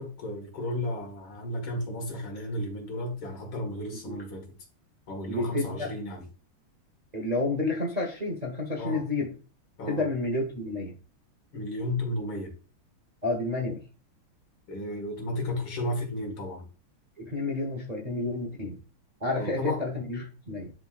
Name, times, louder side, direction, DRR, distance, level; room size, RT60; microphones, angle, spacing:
voice 1, 0.0-4.6 5.1-6.3 8.8-9.0 9.8-10.0 11.5-12.5 14.7-16.6 19.4-19.8, left 1 dB, 75° left, 1 dB, 2.6 m, -33 dB
voice 2, 5.3-5.9 7.1-9.3 9.9-10.9 13.2-13.8 17.2-18.8 19.2-20.7, left 2 dB, 30° right, 0 dB, 0.8 m, -30 dB
10.5 x 3.7 x 2.4 m, 0.35 s
omnidirectional pair, 2.3 m